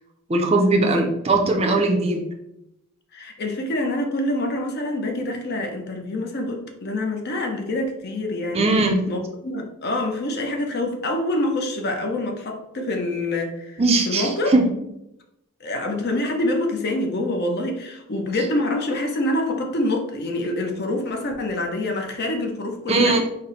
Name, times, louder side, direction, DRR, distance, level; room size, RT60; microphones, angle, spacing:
voice 1, 0.3-2.2 8.5-9.0 13.8-14.7 22.9-23.2, right 2 dB, 30° right, 2 dB, 0.4 m, -19 dB
voice 2, 3.1-8.6 9.1-13.8 14.1-14.5 15.6-23.2, left 1 dB, 50° left, 3 dB, 0.6 m, -26 dB
4.2 x 2.1 x 3.9 m, 0.84 s
head